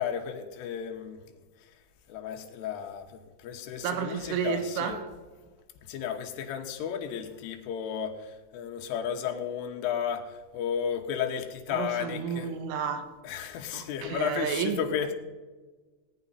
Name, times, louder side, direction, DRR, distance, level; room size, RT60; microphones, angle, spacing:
voice 1, 0.0-1.7 2.1-5.0 5.9-12.5 13.2-15.1, left 8 dB, 90° left, 3.7 m, -33 dB
voice 2, 3.8-5.1 11.7-13.1 13.7-14.8, right 8 dB, 85° right, 3.6 m, -31 dB
19.0 x 10.0 x 4.1 m
omnidirectional pair, 5.5 m